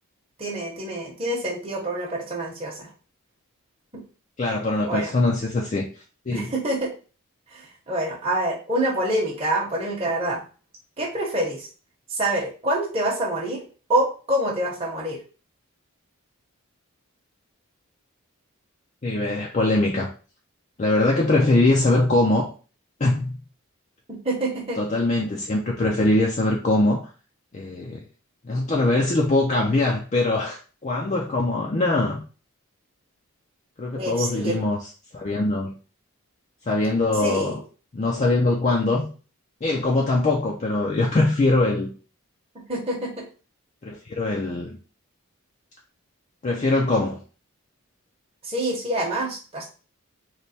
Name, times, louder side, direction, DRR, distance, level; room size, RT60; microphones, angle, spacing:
voice 1, 0.4-2.9 3.9-4.0 4.9-5.1 6.3-6.9 7.5-10.4 11.0-11.7 12.1-13.6 13.9-15.2 24.1-24.8 33.9-34.6 37.2-37.6 42.7-43.2 48.4-49.7, right 1 dB, 25° right, -4 dB, 0.9 m, -26 dB
voice 2, 4.4-5.9 6.3-6.5 19.0-20.1 20.8-22.5 23.0-23.4 24.8-27.1 27.5-28.0 28.4-32.2 33.8-34.9 35.1-35.7 36.7-37.6 37.9-39.1 39.6-41.9 43.8-44.8 46.4-47.2, left 2 dB, 30° left, -1 dB, 0.4 m, -22 dB
3.2 x 2.2 x 4.1 m, 0.36 s
head